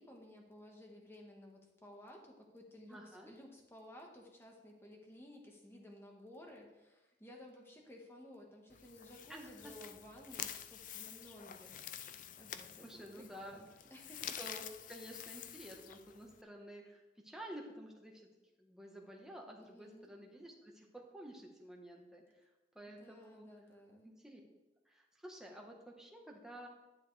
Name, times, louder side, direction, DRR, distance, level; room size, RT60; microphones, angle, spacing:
voice 1, 0.0-12.1 12.4-14.4 19.6-20.1 23.0-24.1, left 1 dB, 15° left, 0 dB, 1.5 m, -56 dB
voice 2, 2.9-3.3 9.3-9.7 12.8-13.6 14.4-18.3 18.6-22.5 22.7-23.5 24.0-24.4 24.8-26.7, right 1 dB, 5° right, 0 dB, 1.3 m, -51 dB
sound 1, 8.7-16.4, left 9 dB, 45° left, 0.4 m, -48 dB
10.5 x 9.5 x 3.4 m, 1.1 s
head